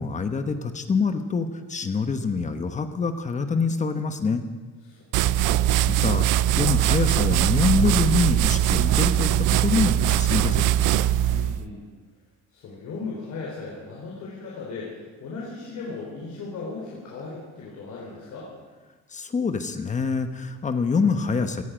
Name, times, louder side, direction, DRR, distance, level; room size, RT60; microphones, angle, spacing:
voice 1, 0.0-4.4 6.0-6.3 6.5-10.6 19.1-21.6, left 4 dB, 25° left, 8 dB, 1.1 m, -25 dB
voice 2, 4.8-5.4 11.3-11.8 12.5-18.5, left 4 dB, 65° left, -4 dB, 4.1 m, -37 dB
sound 1, 5.1-11.6, right 12 dB, 90° right, 0.5 m, -21 dB
18.0 x 14.5 x 5.2 m, 1.4 s
cardioid pair, 155°, 30 cm